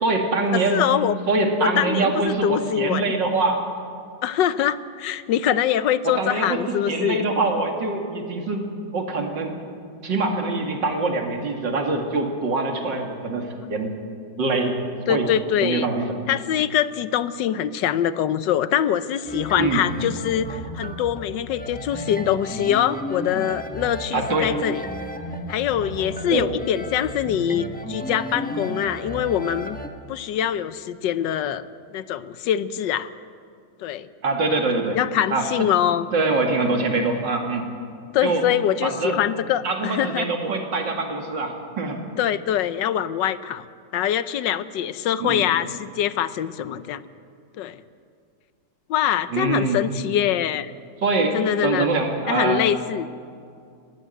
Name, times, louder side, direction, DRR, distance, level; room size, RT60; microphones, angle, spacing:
voice 1, 0.0-0.8 1.3-3.6 6.0-8.6 8.9-9.5 10.0-13.9 14.4-14.8 15.1-15.3 15.6-16.1 19.6-19.8 24.1-24.5 26.2-26.5 34.2-35.0 35.3-35.5 36.1-37.6 38.2-38.5 38.8-39.2 39.6-42.0 45.2-45.4 49.3-49.8 51.0-52.6, right 3 dB, 75° right, 3 dB, 2.9 m, -24 dB
voice 2, 0.5-1.1 1.6-3.1 4.2-7.2 15.1-15.9 16.3-24.8 25.5-29.8 30.1-31.6 31.9-33.1 33.8-34.1 34.9-36.1 38.1-40.3 42.2-43.7 43.9-47.0 47.6-47.8 48.9-50.7 51.3-51.9 52.3-53.1, left 10 dB, 75° left, 15 dB, 1.3 m, -24 dB
sound 1, 19.2-29.9, equal, 5° left, 1.0 m, -33 dB
20.5 x 15.5 x 9.3 m, 2.3 s
omnidirectional pair, 2.0 m